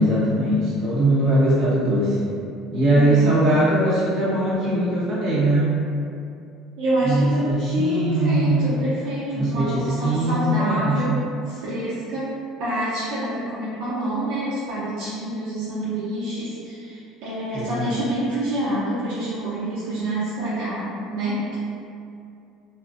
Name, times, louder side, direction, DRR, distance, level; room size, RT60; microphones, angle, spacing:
voice 1, 0.0-2.3 2.7-5.7 7.0-8.7 9.3-11.2 17.5-18.0, right 1 dB, 50° right, -10 dB, 1.3 m, -21 dB
voice 2, 2.9-3.3 6.8-11.2 11.5-12.3 12.6-21.6, right 1 dB, 75° right, -11 dB, 0.7 m, -27 dB
2.8 x 2.5 x 2.5 m, 2.5 s
cardioid pair, 135°, 0 cm